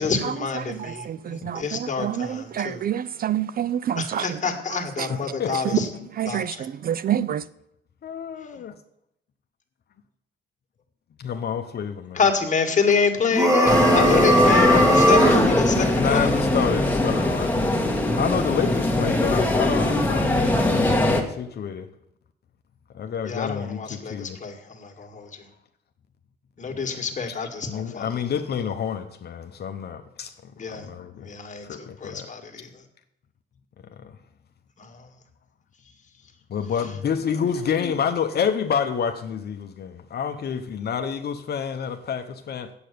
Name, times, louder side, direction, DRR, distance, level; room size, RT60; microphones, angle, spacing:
voice 1, 0.0-2.8 4.0-5.9 6.3-6.4 12.1-16.3 23.3-25.3 26.6-28.1 30.6-30.9 31.2-31.7 32.0-32.7, left 5 dB, 40° left, 2.0 m, -27 dB
voice 2, 0.7-4.3 5.0-5.1 6.2-6.5 6.8-7.4, right 10 dB, 50° right, 0.4 m, -27 dB
voice 3, 5.1-5.8 8.0-8.7 11.2-12.2 16.0-17.7 18.2-21.9 22.9-24.4 26.7-27.1 27.7-30.3 30.7-31.3 31.6-32.3 36.5-42.7, left 7 dB, 55° left, 0.9 m, -28 dB
sound 1, 13.3-15.5, equal, 15° right, 2.1 m, -18 dB
sound 2, 13.7-21.2, left 1 dB, 10° left, 1.7 m, -21 dB
8.4 x 8.0 x 6.7 m
cardioid pair, 90°, 20 cm